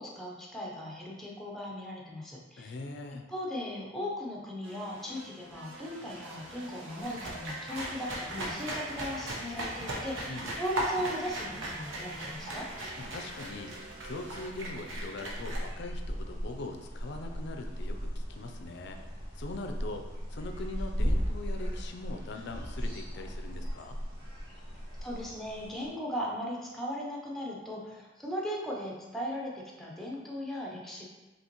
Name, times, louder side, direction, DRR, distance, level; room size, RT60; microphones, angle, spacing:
voice 1, 0.0-2.7 3.3-12.7 25.0-31.1, equal, ahead, -3 dB, 0.7 m, -38 dB
voice 2, 2.6-3.2 10.3-10.5 13.0-13.7 14.0-19.0 19.4-20.0 20.3-24.0, left 2 dB, 60° left, 5 dB, 0.5 m, -41 dB
sound 1, 4.6-14.5, right 1 dB, 65° right, 0.6 m, -48 dB
sound 2, 7.0-15.6, right 1 dB, 80° right, 1.0 m, -38 dB
sound 3, 7.8-25.9, equal, 25° right, 1.4 m, -38 dB
5.5 x 2.9 x 3.0 m, 1.1 s
head